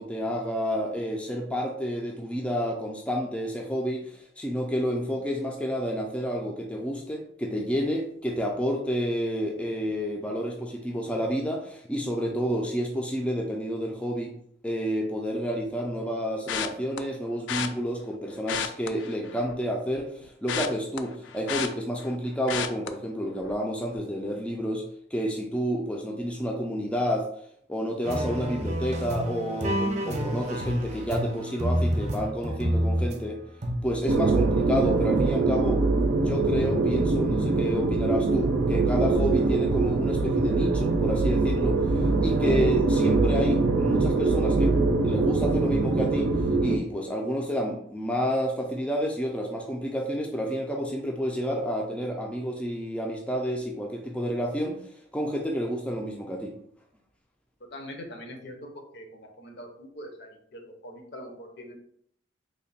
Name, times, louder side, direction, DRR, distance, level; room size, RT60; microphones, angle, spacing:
voice 1, 0.0-14.3 14.6-24.8 25.1-27.3 27.7-33.4 33.8-35.8 36.2-44.7 45.0-46.3 46.6-54.8 55.1-56.6, equal, 5° left, 1 dB, 0.3 m, -30 dB
sound 1, 16.5-17.0 17.5-17.7 18.4-19.6 19.9-22.2 22.5-22.9 23.4-23.6 23.9-24.0, left 8 dB, 85° left, 0.3 m, -32 dB
sound 2, 28.0-33.2 33.6-34.0, equal, 40° right, 0.6 m, -28 dB
sound 3, 34.1-46.8, right 3 dB, 85° right, 0.4 m, -23 dB
voice 2, 57.7-58.6 58.9-61.8, equal, 65° left, 3 dB, 0.7 m, -43 dB
3.2 x 2.2 x 4.0 m, 0.67 s
head